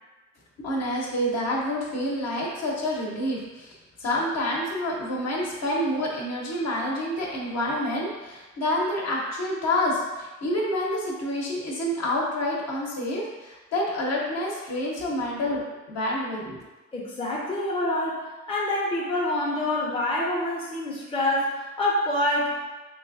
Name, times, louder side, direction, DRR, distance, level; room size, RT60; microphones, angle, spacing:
voice 1, 0.6-3.7 4.0-15.6 15.9-16.6, left 1 dB, 55° left, -3 dB, 0.9 m, -28 dB
voice 2, 16.9-22.5, left 1 dB, 20° left, -4 dB, 0.6 m, -26 dB
3.2 x 3.1 x 2.6 m, 1.2 s
cardioid pair, 90°, 30 cm